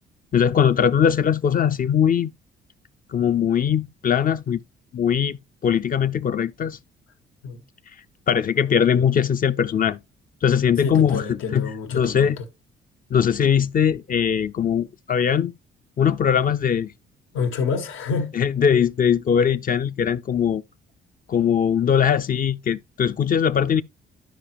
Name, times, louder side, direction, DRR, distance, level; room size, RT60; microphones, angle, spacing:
voice 1, 0.3-2.3 3.1-4.6 4.9-6.8 8.3-10.0 10.4-11.3 11.5-12.4 13.1-15.5 16.0-16.9 18.4-20.6 21.3-23.8, left 8 dB, 45° left, 0.5 m, -20 dB
voice 2, 10.8-12.4 17.3-18.3, left 5 dB, 90° left, 1.6 m, -28 dB
11.5 x 4.9 x 3.0 m
cardioid pair, 90°, 20 cm